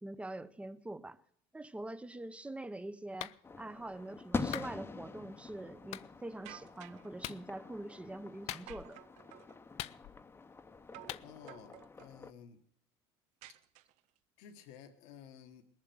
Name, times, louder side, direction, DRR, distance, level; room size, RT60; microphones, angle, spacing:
voice 1, 0.0-1.2 1.5-9.0, right 1 dB, 10° right, 0.7 m, -44 dB
Clapping, 3.2-3.4 4.5-4.7 5.9-6.1 7.2-7.4 8.5-8.9 9.8-10.3 11.1-11.3, left 15 dB, 60° left, 0.5 m, -42 dB
sound 1, 3.4-12.3, left 4 dB, 20° left, 0.8 m, -45 dB
sound 2, 6.4-7.1 8.7-9.6 10.9-11.2 11.5-12.2 13.4-14.2, right 14 dB, 70° right, 0.6 m, -53 dB
voice 2, 11.2-12.6 14.4-15.6, left 8 dB, 80° left, 1.3 m, -54 dB
20.0 x 7.5 x 7.6 m
supercardioid pair, 100°, 12 cm